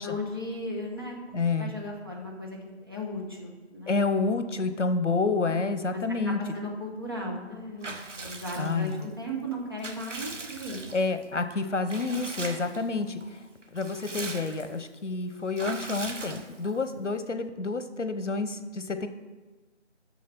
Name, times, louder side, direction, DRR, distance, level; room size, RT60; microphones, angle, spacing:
voice 1, 0.0-1.2 1.6-4.0 5.9-10.9, left 1 dB, 20° right, -3 dB, 1.0 m, -36 dB
voice 2, 1.3-1.7 3.9-6.4 8.6-9.1 10.9-13.4 13.7-19.1, left 3 dB, 80° left, 10 dB, 1.0 m, -29 dB
Water / Bathtub (filling or washing) / Liquid, 7.8-9.0 9.5-11.2 11.9-12.8 13.2-13.3 13.6-14.8 15.5-16.8, right 3 dB, 90° right, 1.3 m, -40 dB
8.3 x 6.3 x 6.0 m, 1.2 s
figure-of-eight pair, 170°, 36 cm